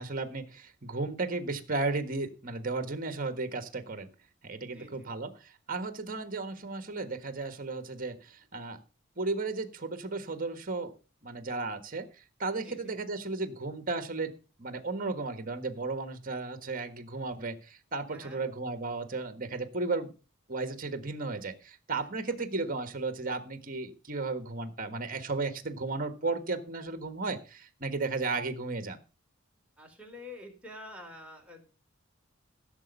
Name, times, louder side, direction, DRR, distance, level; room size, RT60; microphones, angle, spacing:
voice 1, 0.0-4.1 4.4-8.8 9.2-10.9 11.2-14.3 14.6-20.1 20.5-29.0, right 3 dB, 40° right, 9 dB, 1.5 m, -34 dB
voice 2, 4.7-5.1 12.6-12.9 18.1-18.4 21.9-22.1 29.8-31.7, left 2 dB, 5° right, 1 dB, 3.9 m, -47 dB
16.0 x 7.0 x 5.3 m, 0.34 s
head